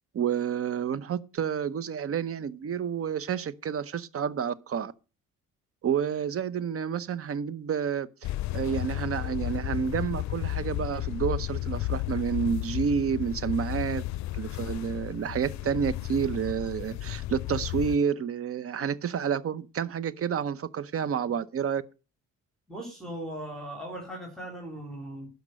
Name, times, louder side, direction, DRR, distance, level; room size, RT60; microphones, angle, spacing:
voice 1, 0.1-4.9 5.8-14.1 14.3-21.8, right 7 dB, 50° right, 0.8 m, -29 dB
sound 1, 8.2-18.0, left 16 dB, 65° left, 0.5 m, -33 dB
voice 2, 22.7-25.3, right 1 dB, ahead, 3.5 m, -38 dB
12.0 x 5.2 x 6.5 m
cardioid pair, 90°, 30 cm